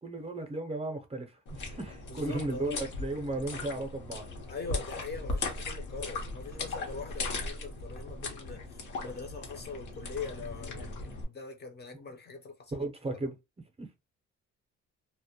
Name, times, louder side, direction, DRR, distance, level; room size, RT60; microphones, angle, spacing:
voice 1, 0.0-4.2 12.7-13.4 13.8-13.9, right 2 dB, 20° right, 0.5 m, -35 dB
sound 1, 1.5-11.2, left 3 dB, 80° left, 0.9 m, -38 dB
voice 2, 2.1-2.9 4.5-12.9, left 5 dB, 35° left, 0.5 m, -42 dB
2.2 x 2.1 x 2.8 m
cardioid pair, 90°, 30 cm